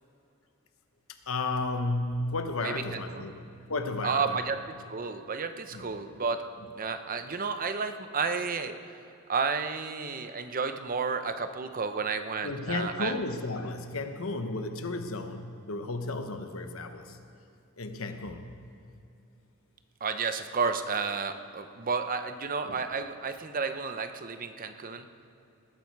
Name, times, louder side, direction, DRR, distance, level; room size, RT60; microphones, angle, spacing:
voice 1, 1.3-3.4 3.7-4.4 5.7-5.9 12.4-17.2 17.8-18.5 22.7-22.8, left 2 dB, 65° left, 7 dB, 1.1 m, -33 dB
voice 2, 2.6-3.3 4.0-6.5 6.8-8.8 9.3-13.1 20.0-25.1, right 5 dB, 40° right, 8 dB, 0.8 m, -32 dB
20.0 x 12.5 x 4.7 m, 2.8 s
head